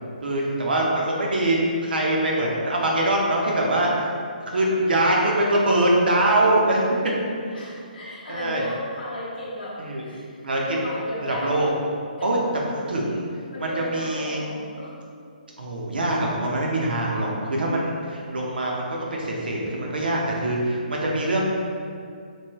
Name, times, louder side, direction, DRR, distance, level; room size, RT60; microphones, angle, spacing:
voice 1, 0.2-1.6 1.8-4.1 4.5-6.8 7.5-7.7 8.3-8.7 9.8-10.0 10.4-10.6 11.2-11.7 12.2-12.4 12.7-13.2 13.6-14.4 15.6-21.4, right 1 dB, 85° right, -2 dB, 0.7 m, -23 dB
voice 2, 7.5-10.3 10.6-11.7 12.2-12.3 13.5-14.9, left 1 dB, 90° left, -7 dB, 0.6 m, -35 dB
3.0 x 2.3 x 3.0 m, 2.3 s
hypercardioid pair, 165°, 5 cm